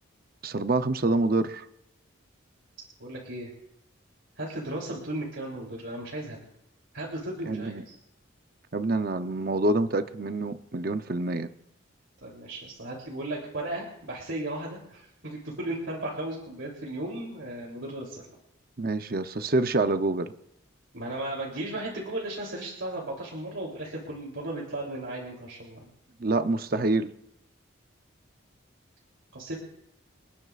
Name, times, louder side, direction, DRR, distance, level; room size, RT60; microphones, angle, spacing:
voice 1, 0.4-1.6 7.5-7.8 8.7-11.5 18.8-20.3 26.2-27.1, right 2 dB, 45° right, 10 dB, 0.7 m, -26 dB
voice 2, 3.0-3.5 4.4-6.4 6.9-8.0 12.2-18.2 20.9-25.9 29.3-29.5, right 1 dB, 70° right, -2 dB, 3.3 m, -35 dB
29.5 x 10.5 x 2.5 m, 0.80 s
head